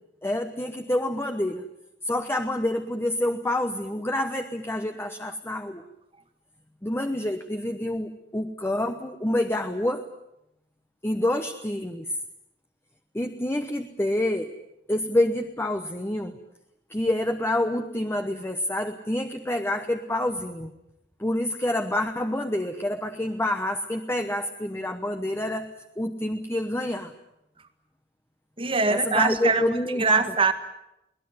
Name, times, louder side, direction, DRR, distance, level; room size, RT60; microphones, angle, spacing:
voice 1, 0.2-1.6 2.0-5.8 6.8-10.0 11.0-12.1 13.1-14.5 14.9-16.4 16.9-20.7 21.2-25.7 26.0-27.1 28.9-30.3, left 1 dB, 15° left, 6 dB, 1.0 m, -27 dB
voice 2, 28.6-29.6 30.0-30.5, right 4 dB, 30° right, 9 dB, 1.9 m, -22 dB
22.5 x 18.5 x 9.5 m, 0.85 s
head